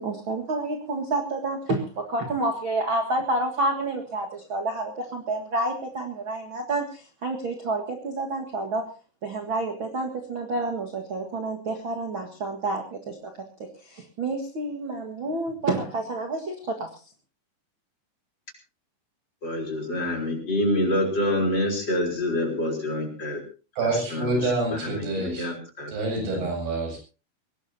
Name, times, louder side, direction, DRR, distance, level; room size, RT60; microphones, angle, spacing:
voice 1, 0.0-8.9 9.2-13.3 13.6-16.9, right 2 dB, 40° right, 2 dB, 2.0 m, -29 dB
voice 2, 19.4-23.4 25.2-25.9, left 1 dB, 30° left, 2 dB, 4.5 m, -26 dB
voice 3, 23.8-25.5 25.9-27.0, right 2 dB, 85° right, 1 dB, 9.8 m, -27 dB
22.0 x 19.0 x 2.8 m, 0.34 s
omnidirectional pair, 4.5 m